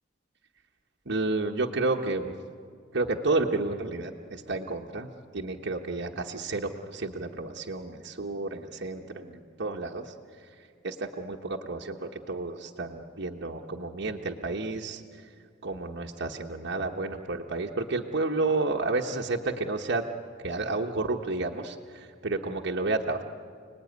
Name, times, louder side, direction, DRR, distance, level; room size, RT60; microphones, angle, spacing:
voice 1, 1.1-2.3 2.9-5.1 5.3-10.1 10.8-15.0 15.6-20.0 20.4-23.2, right 3 dB, 60° right, 0 dB, 1.2 m, -31 dB
29.5 x 19.5 x 9.4 m, 2.3 s
head